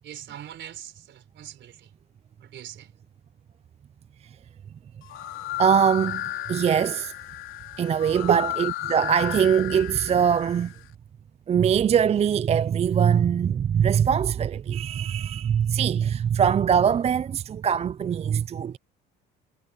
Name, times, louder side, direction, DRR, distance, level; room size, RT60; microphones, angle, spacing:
voice 1, 0.0-1.9 2.4-2.9 8.3-8.4, right 11 dB, 60° right, 4.6 m, -34 dB
sound 1, 5.0-10.8, left 14 dB, 70° left, 3.9 m, -34 dB
voice 2, 5.6-7.1 7.8-10.7 11.5-18.8, right 8 dB, 30° right, 0.4 m, -22 dB
supercardioid pair, 85°, 21 cm